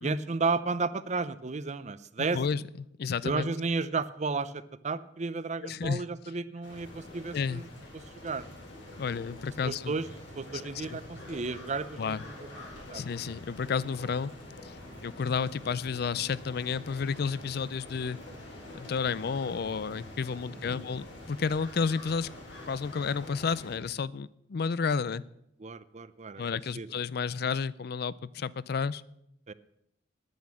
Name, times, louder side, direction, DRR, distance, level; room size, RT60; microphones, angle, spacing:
voice 1, 0.0-2.4 3.2-7.7 7.9-8.4 9.6-10.0 10.4-12.3 12.9-13.0 14.9-15.1 25.6-26.4 26.8-26.9 29.5-29.6, right 4 dB, 40° right, 15 dB, 0.6 m, -33 dB
voice 2, 2.3-3.5 5.6-6.0 7.3-7.6 9.0-10.0 10.5-11.0 12.0-12.2 12.9-14.3 14.6-14.8 15.0-18.2 18.8-22.3 22.7-25.2 26.4-29.0, left 5 dB, 60° left, 19 dB, 0.4 m, -31 dB
sound 1, 6.6-23.8, left 1 dB, 85° left, 4.2 m, -46 dB
10.5 x 9.4 x 7.5 m, 0.80 s
head